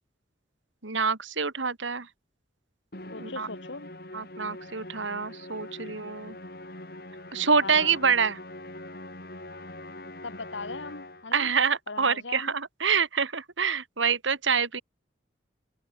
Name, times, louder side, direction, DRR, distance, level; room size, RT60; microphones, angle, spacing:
voice 1, 0.8-2.1 3.2-3.5 4.1-6.4 7.3-8.4 11.3-14.8, right 5 dB, 85° right, 2.4 m, -26 dB
Musical instrument, 2.9-11.4, left 1 dB, 50° left, 6.0 m, -43 dB
voice 2, 3.1-3.9 7.6-8.0 10.2-11.5 11.9-12.5, left 3 dB, 80° left, 2.0 m, -39 dB
head